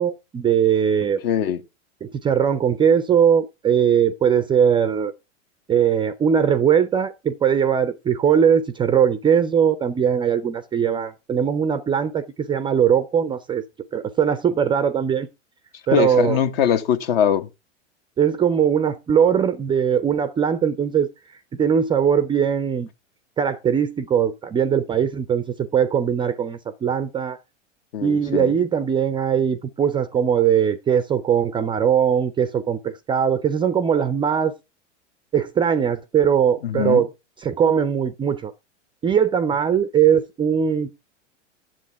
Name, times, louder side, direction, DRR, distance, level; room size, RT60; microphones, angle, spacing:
voice 1, 0.0-1.2 2.0-5.1 5.7-13.6 13.9-15.3 15.9-16.4 18.2-21.1 21.6-22.9 23.4-27.4 28.0-34.5 35.3-37.1 37.4-38.5 39.0-40.9, right 8 dB, 15° right, 0.5 m, -20 dB
voice 2, 1.2-1.6 15.9-17.5 27.9-28.5 36.6-37.0, left 9 dB, 50° left, 1.2 m, -21 dB
10.5 x 7.5 x 4.6 m
figure-of-eight pair, 95°, 38 cm